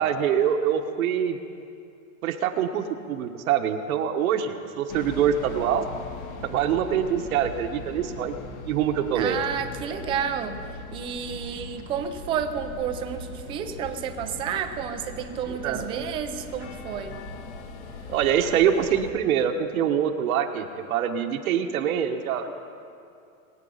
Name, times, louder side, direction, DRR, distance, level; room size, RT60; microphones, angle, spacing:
voice 1, 0.0-1.4 2.2-5.9 6.4-8.3 8.7-9.4 15.5-15.8 18.1-22.5, right 9 dB, 80° right, 5 dB, 1.4 m, -24 dB
sound 1, 4.9-19.1, left 3 dB, 50° left, 1.3 m, -40 dB
voice 2, 9.1-10.6 10.9-17.2, right 8 dB, 15° right, 7 dB, 0.4 m, -31 dB
21.0 x 8.5 x 5.6 m, 2.5 s
supercardioid pair, 160°, 42 cm